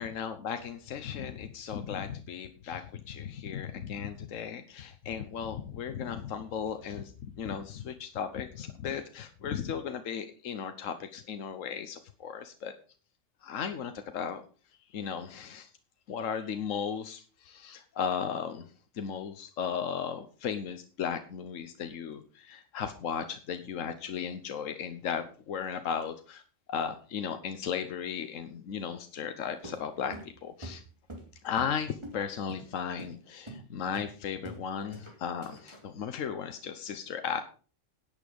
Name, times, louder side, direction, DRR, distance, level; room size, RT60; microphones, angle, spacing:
voice 1, 0.0-12.7 13.4-14.4 14.9-15.7 16.1-18.6 18.9-26.4 26.7-30.8 31.4-37.4, left 7 dB, 80° left, 8 dB, 1.3 m, -36 dB
sound 1, 29.6-31.8 32.0-32.2 32.5-32.7 33.0-33.2 33.5-33.7 33.9-34.6 34.9-35.8, right 1 dB, 20° right, 3.0 m, -44 dB
11.0 x 8.8 x 5.2 m, 0.39 s
omnidirectional pair, 1.3 m